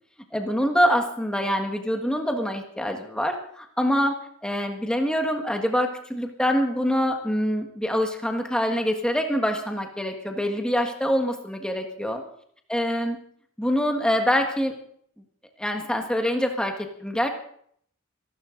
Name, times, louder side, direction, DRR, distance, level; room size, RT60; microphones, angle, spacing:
voice 1, 0.3-4.2 4.4-12.2 12.7-13.2 13.6-14.7 15.6-17.3, equal, 5° left, 4 dB, 1.5 m, -25 dB
26.0 x 12.0 x 3.9 m, 0.63 s
head